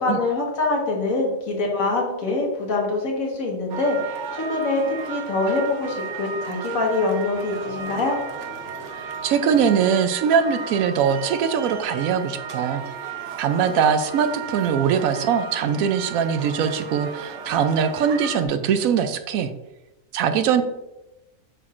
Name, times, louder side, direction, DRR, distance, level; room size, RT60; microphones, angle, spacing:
voice 1, 0.0-8.2, left 3 dB, 80° left, -1 dB, 1.9 m, -24 dB
sound 1, 3.7-18.5, right 6 dB, 65° right, 1.0 m, -34 dB
sound 2, 7.3-9.7, left 2 dB, 60° left, 2.7 m, -43 dB
voice 2, 8.9-12.8 13.4-19.5 20.1-20.6, right 7 dB, 90° right, 8 dB, 1.0 m, -22 dB
8.0 x 5.9 x 2.5 m, 0.97 s
omnidirectional pair, 1.4 m